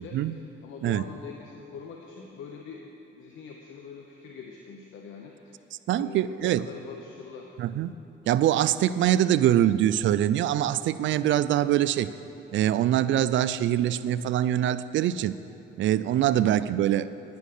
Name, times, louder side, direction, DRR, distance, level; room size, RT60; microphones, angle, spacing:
voice 1, 0.0-2.8 3.1-5.6 6.0-7.5 16.1-16.4, left 6 dB, 80° left, 1 dB, 1.0 m, -43 dB
voice 2, 5.9-6.6 7.6-7.9 8.3-12.1 12.5-15.4 15.8-17.1, right 12 dB, 70° right, 15 dB, 0.5 m, -24 dB
10.5 x 10.0 x 6.6 m, 2.8 s
cardioid pair, 90°, 20 cm